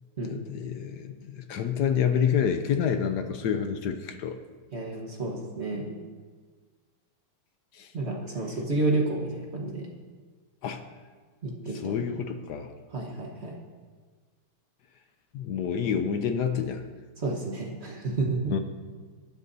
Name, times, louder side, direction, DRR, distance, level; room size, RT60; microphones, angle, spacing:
voice 1, 0.2-4.4 7.7-7.9 10.6-10.8 11.8-12.7 15.3-16.8 18.5-18.6, left 7 dB, 70° left, 7 dB, 1.0 m, -28 dB
voice 2, 4.7-6.0 7.9-9.9 11.4-12.2 12.9-13.5 17.2-18.5, right 2 dB, 35° right, 0 dB, 1.3 m, -30 dB
21.5 x 9.9 x 2.7 m, 1.5 s
omnidirectional pair, 2.4 m